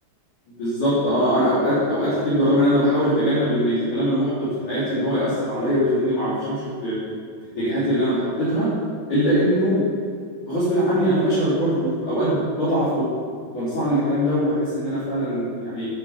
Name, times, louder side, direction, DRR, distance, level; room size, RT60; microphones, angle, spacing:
voice 1, 0.5-7.0 7.5-8.7 9.1-9.8 10.5-13.2 13.5-15.9, equal, 50° left, -13 dB, 4.8 m, -22 dB
9.7 x 8.0 x 7.5 m, 2.1 s
omnidirectional pair, 4.8 m